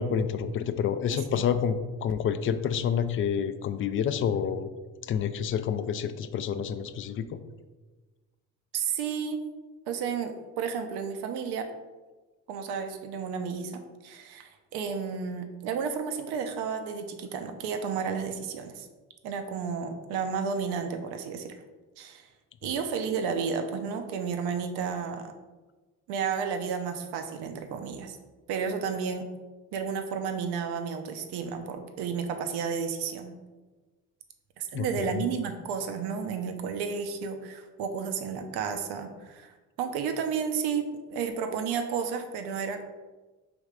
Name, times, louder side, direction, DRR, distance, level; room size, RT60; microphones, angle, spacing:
voice 1, 0.0-4.7 5.0-7.3 34.7-35.2, left 7 dB, 35° left, 11 dB, 0.4 m, -28 dB
voice 2, 1.1-1.4 8.7-9.4 9.9-11.7 12.5-18.9 19.2-21.5 22.0-22.3 22.6-25.3 26.1-28.2 28.5-29.2 29.7-33.3 34.6-39.5 39.8-42.8, right 6 dB, 70° right, 7 dB, 0.7 m, -32 dB
3.4 x 3.1 x 4.9 m, 1.3 s
hypercardioid pair, 55°, 40 cm